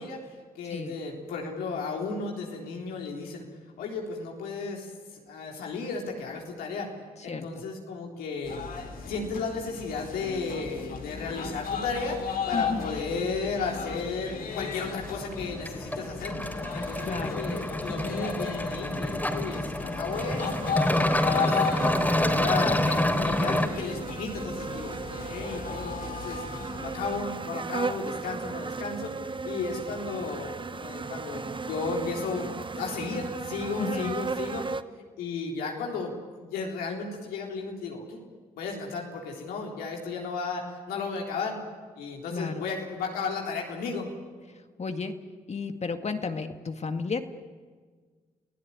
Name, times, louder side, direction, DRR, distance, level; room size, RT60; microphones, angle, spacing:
voice 1, 0.0-3.4 3.8-6.9 7.2-8.6 9.1-16.4 16.7-20.8 21.3-21.6 21.9-26.4 26.8-29.2 29.4-32.5 32.8-34.7 35.2-38.2 38.6-41.6 42.0-44.1, left 4 dB, 90° left, 0 dB, 3.8 m, -34 dB
sound 1, 8.4-27.2, left 6 dB, 70° left, 3.1 m, -36 dB
voice 2, 12.5-13.0 17.0-17.4 33.8-34.2 42.3-42.7 44.8-45.1 45.5-47.2, left 4 dB, 45° left, 7 dB, 2.1 m, -32 dB
sound 2, 14.5-23.7, left 1 dB, 10° left, 3.7 m, -28 dB
sound 3, 20.1-34.8, right 4 dB, 35° right, 1.0 m, -36 dB
29.5 x 16.5 x 9.8 m, 1.5 s
supercardioid pair, 45°, 15 cm